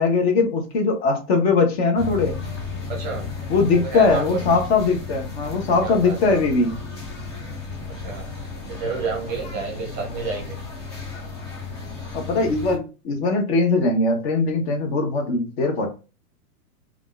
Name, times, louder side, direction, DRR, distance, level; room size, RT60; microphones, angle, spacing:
voice 1, 0.0-2.3 3.5-6.7 12.1-15.9, left 3 dB, 45° left, 4 dB, 0.8 m, -20 dB
sound 1, 2.0-12.8, left 4 dB, 20° left, 0.3 m, -34 dB
voice 2, 2.9-3.3 3.7-4.4 5.8-6.2 7.9-10.6, right 4 dB, 20° right, 1 dB, 0.6 m, -30 dB
3.5 x 2.4 x 2.3 m, 0.32 s
figure-of-eight pair, 105°, 47 cm